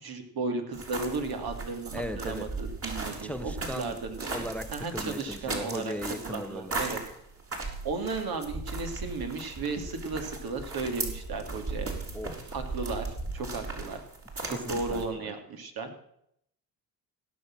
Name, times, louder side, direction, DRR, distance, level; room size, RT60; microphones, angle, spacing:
voice 1, 0.0-7.0 7.8-11.9 12.5-14.0 14.5-15.9, right 3 dB, 60° right, 5 dB, 2.8 m, -35 dB
sound 1, 0.7-15.1, right 3 dB, 35° right, 4.0 m, -37 dB
voice 2, 1.9-2.5 3.2-4.0 4.3-6.8 12.1-12.5 14.5-15.3, left 1 dB, 5° left, 12 dB, 0.8 m, -38 dB
16.5 x 6.8 x 7.5 m, 0.73 s
supercardioid pair, 70°, 42 cm